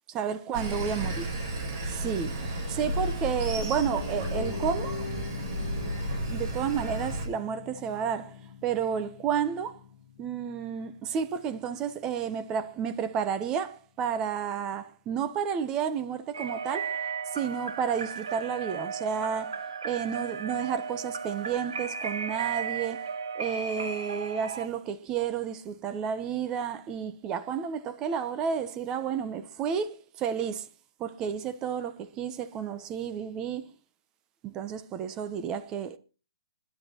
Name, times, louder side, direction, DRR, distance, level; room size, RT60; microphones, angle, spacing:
voice 1, 0.1-1.1 1.9-5.1 6.3-9.8 10.2-17.0 17.3-23.1 23.4-30.7 31.0-33.7 34.4-36.0, right 7 dB, 25° right, 0.9 m, -31 dB
Sawing, 0.5-7.3, right 1 dB, 45° right, 7.3 m, -33 dB
Piano, 3.5-13.5 13.8-13.9, left 6 dB, 60° left, 1.6 m, -43 dB
sound 1, 16.3-24.7, right 5 dB, 80° right, 1.2 m, -35 dB
25.5 x 10.5 x 3.0 m
hypercardioid pair, 140°, 3 cm